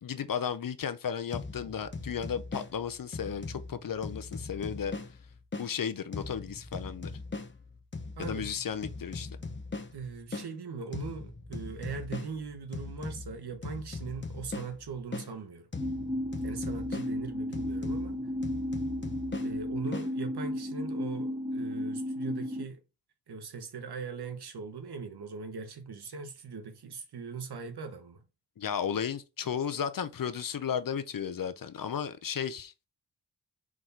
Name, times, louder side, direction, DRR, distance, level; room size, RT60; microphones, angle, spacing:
voice 1, 0.0-4.9 5.6-7.1 8.2-9.3 28.6-32.7, left 7 dB, 55° left, 0.8 m, -34 dB
sound 1, 1.3-5.7 6.1-10.5 10.9-15.3 15.7-20.1, left 3 dB, 30° left, 1.1 m, -40 dB
voice 2, 8.2-8.5 9.9-15.7 16.4-18.2 19.4-22.8 23.3-28.2, right 5 dB, 70° right, 1.4 m, -40 dB
sound 2, 15.8-22.6, left 1 dB, 15° right, 1.9 m, -34 dB
4.8 x 4.1 x 5.8 m
wide cardioid pair, 95°, 41 cm